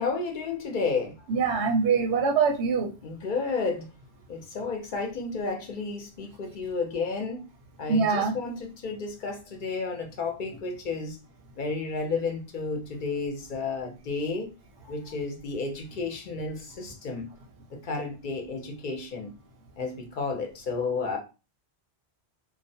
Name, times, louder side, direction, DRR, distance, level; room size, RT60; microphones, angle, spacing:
voice 1, 0.0-1.1 3.0-3.9 4.3-7.5 7.8-11.2 11.6-14.5 14.8-17.3 17.7-19.3 19.8-21.2, left 4 dB, 55° left, 0.6 m, -32 dB
voice 2, 1.3-2.9 7.9-8.3, right 5 dB, 85° right, 0.9 m, -23 dB
2.3 x 2.1 x 2.6 m
omnidirectional pair, 1.1 m